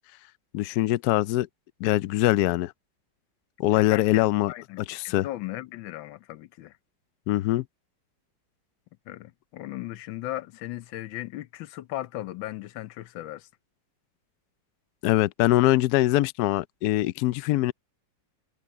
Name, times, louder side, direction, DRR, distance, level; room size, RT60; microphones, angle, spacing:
voice 1, 0.5-1.5 1.8-2.7 3.6-4.5 4.9-5.3 7.3-7.6 15.0-17.7, left 16 dB, 70° left, 0.9 m, -23 dB
voice 2, 3.7-6.8 9.1-13.5, left 15 dB, 90° left, 1.5 m, -37 dB
omnidirectional pair, 2.0 m